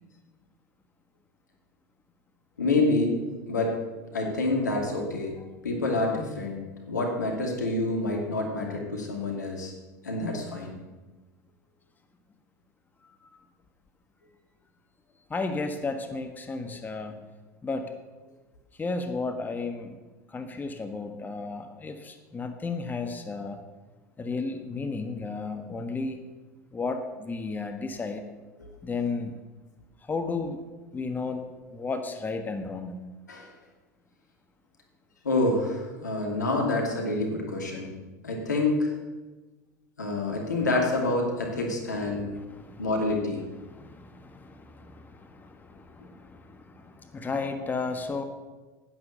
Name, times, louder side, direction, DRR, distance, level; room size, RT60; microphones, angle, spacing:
voice 1, 2.6-3.2 3.5-3.8 4.1-5.3 5.6-6.6 6.9-9.7 10.0-10.7 28.6-28.7 33.3-33.5 35.2-37.9 38.2-38.9 40.0-42.4 42.8-43.4, left 2 dB, 90° left, 1 dB, 2.6 m, -27 dB
voice 2, 15.3-17.2 17.6-17.8 18.8-20.0 20.3-23.6 24.2-26.2 26.7-28.2 28.8-29.3 30.0-30.6 30.9-31.4 31.7-32.9 40.6-40.7 42.3-42.9 43.6-48.2, left 3 dB, 20° left, 6 dB, 1.4 m, -33 dB
10.5 x 9.7 x 6.7 m, 1.2 s
hypercardioid pair, 80°, 9 cm